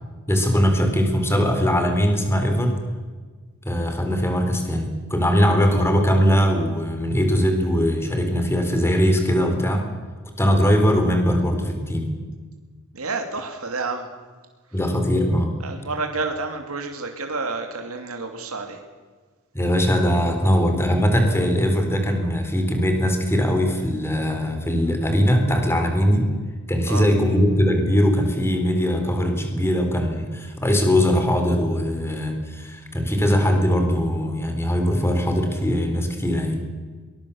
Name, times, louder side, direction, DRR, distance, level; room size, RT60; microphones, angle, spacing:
voice 1, 0.3-2.7 3.6-9.8 10.4-12.1 14.7-15.5 19.5-26.3 26.7-36.6, equal, 10° left, 5 dB, 4.0 m, -20 dB
voice 2, 12.9-14.1 15.6-18.8 26.9-27.1, right 3 dB, 85° right, 5 dB, 2.7 m, -29 dB
23.0 x 21.0 x 7.1 m, 1.4 s
head